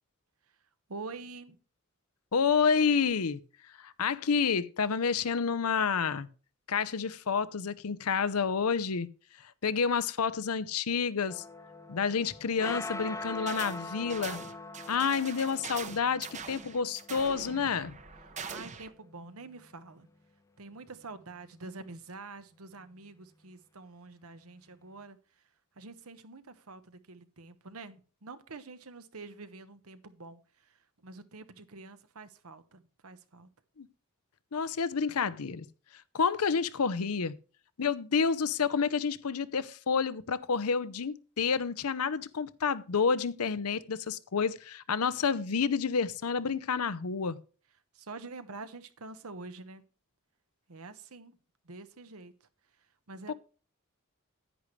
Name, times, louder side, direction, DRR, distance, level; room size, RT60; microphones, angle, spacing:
voice 1, 0.9-1.6 18.5-20.1 20.6-25.4 25.7-33.5 47.9-49.8 50.7-51.4 51.6-52.5 53.1-53.3, right 3 dB, 75° right, 1.1 m, -46 dB
voice 2, 2.3-3.4 3.8-6.3 6.7-9.1 9.6-11.4 11.9-14.4 14.9-17.9 33.8-33.9 34.5-35.7 36.1-37.4 37.8-47.4 53.3-53.4, left 5 dB, 90° left, 0.7 m, -29 dB
sound 1, 11.3-19.8, left 2 dB, 15° left, 0.6 m, -43 dB
sound 2, 13.5-13.8 14.1-18.9, right 5 dB, 35° right, 0.9 m, -43 dB
10.0 x 9.9 x 3.2 m
head